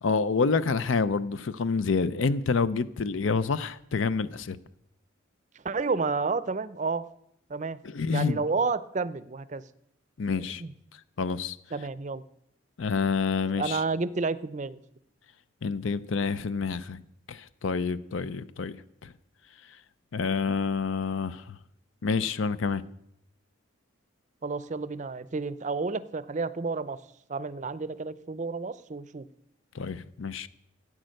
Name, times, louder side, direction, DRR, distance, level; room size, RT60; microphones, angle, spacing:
voice 1, 0.0-4.6 7.8-8.4 10.2-10.6 11.2-11.6 12.8-13.8 15.6-17.0 17.3-18.8 19.0-19.1 20.1-21.6 22.0-22.8 29.7-30.5, left 4 dB, 75° left, 0.5 m, -28 dB
voice 2, 5.6-7.0 7.5-7.8 8.1-9.6 10.4-10.7 11.7-12.2 13.6-14.8 24.4-27.0 27.3-29.3, right 4 dB, 35° right, 0.5 m, -30 dB
14.5 x 8.8 x 6.4 m
head